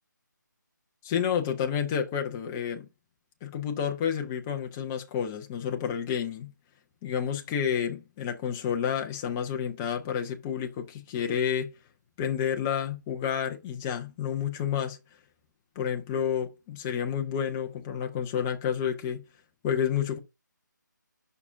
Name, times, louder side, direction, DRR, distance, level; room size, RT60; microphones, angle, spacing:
voice 1, 1.0-2.9 3.4-6.5 7.0-11.7 12.2-15.0 15.8-19.2 19.6-20.2, left 8 dB, 5° left, 0.3 m, -30 dB
5.5 x 4.7 x 5.3 m
figure-of-eight pair, 165°, 11 cm